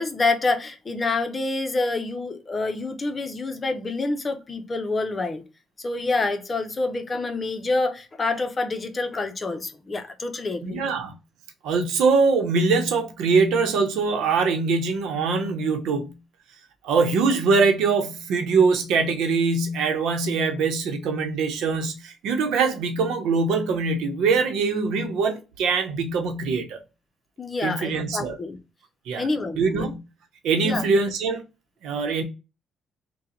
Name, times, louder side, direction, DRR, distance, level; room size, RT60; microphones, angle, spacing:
voice 1, 0.0-5.4 5.8-10.8 27.4-28.6 29.1-29.8 30.6-30.8, left 3 dB, 30° left, 0.8 m, -27 dB
voice 2, 10.6-11.1 11.6-16.1 16.8-26.8 27.6-28.4 29.1-29.3 29.6-30.0 30.4-31.4 31.8-32.2, right 4 dB, 85° right, 0.8 m, -23 dB
3.7 x 2.3 x 4.3 m
cardioid pair, 90°, 0 cm